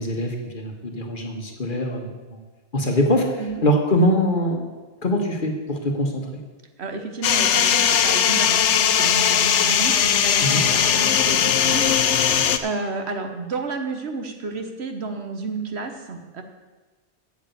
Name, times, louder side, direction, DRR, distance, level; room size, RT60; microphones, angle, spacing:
voice 1, 0.0-2.4 2.7-4.7 5.0-6.2 10.4-10.6, equal, 45° left, 2 dB, 1.5 m, -23 dB
voice 2, 6.8-16.4, right 3 dB, 65° right, 5 dB, 1.3 m, -31 dB
sound 1, 7.2-12.6, left 9 dB, 80° left, 1.0 m, -19 dB
8.4 x 7.3 x 8.1 m, 1.2 s
omnidirectional pair, 1.2 m